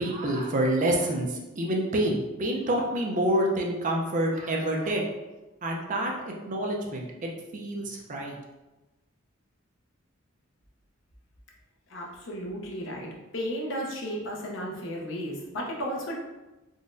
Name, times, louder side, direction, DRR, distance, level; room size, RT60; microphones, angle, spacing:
voice 1, 0.0-5.0 5.6-8.4, right 1 dB, 40° right, 0 dB, 0.4 m, -27 dB
voice 2, 11.9-16.1, equal, 65° left, -2 dB, 0.7 m, -34 dB
3.8 x 2.1 x 2.5 m, 1.1 s
head